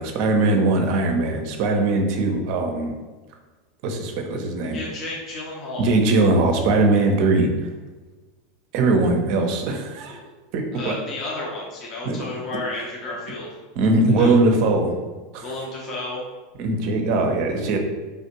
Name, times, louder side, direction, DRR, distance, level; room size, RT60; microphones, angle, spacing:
voice 1, 0.0-2.9 3.8-4.8 5.8-7.5 8.7-10.2 10.5-11.0 12.0-12.2 13.8-14.9 15.3-15.5 16.6-17.8, right 2 dB, 55° right, 3 dB, 0.5 m, -20 dB
voice 2, 4.7-5.9 10.1-10.3 10.7-13.5 14.2-14.3 15.4-16.2, left 2 dB, 40° left, -4 dB, 0.8 m, -32 dB
3.4 x 2.5 x 2.8 m, 1.3 s
hypercardioid pair, 90°, 0 cm